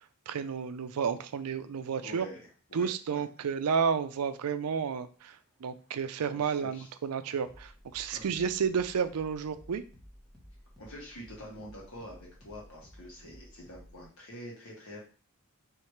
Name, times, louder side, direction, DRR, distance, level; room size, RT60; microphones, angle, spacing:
voice 1, 0.3-2.3 2.7-9.8, right 6 dB, 90° right, 11 dB, 0.4 m, -31 dB
voice 2, 2.0-2.4 2.7-3.2 6.4-6.9 8.1-8.5 10.8-15.0, equal, 65° left, -3 dB, 1.7 m, -46 dB
sound 1, 5.4-14.1, equal, ahead, 1.2 m, -55 dB
4.7 x 3.2 x 3.2 m, 0.39 s
head